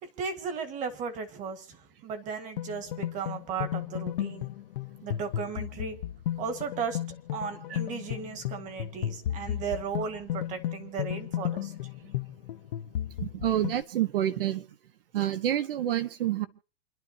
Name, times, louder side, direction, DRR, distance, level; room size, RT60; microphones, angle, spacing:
voice 1, 0.0-4.5 5.0-6.0 6.4-7.0 7.3-11.7, right 5 dB, 25° right, 9 dB, 1.7 m, -35 dB
sound 1, 2.6-13.8, left 12 dB, 60° left, 0.9 m, -34 dB
voice 2, 13.2-14.6 15.1-16.5, right 12 dB, 65° right, 10 dB, 1.5 m, -28 dB
28.5 x 11.0 x 2.9 m, 0.36 s
hypercardioid pair, 150°, 29 cm